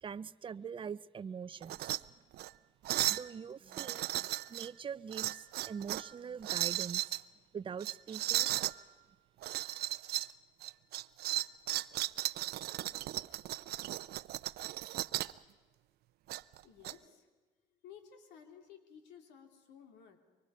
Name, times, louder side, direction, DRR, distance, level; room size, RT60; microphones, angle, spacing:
voice 1, 0.0-2.0 3.1-7.2 7.5-8.5, right 7 dB, 30° right, 16 dB, 0.6 m, -43 dB
sound 1, 1.6-2.0 2.3-2.5 2.9-3.3 3.7-4.7 5.1-6.1 6.4-7.2 7.8-8.8 9.4-10.3 10.6-15.4 16.3-16.9, right 16 dB, 70° right, 0.6 m, -35 dB
voice 2, 13.1-13.6 16.6-17.3 17.8-20.2, left 8 dB, 85° left, 6 dB, 2.9 m, -56 dB
24.5 x 24.0 x 5.5 m, 1.3 s
cardioid pair, 110°, 17 cm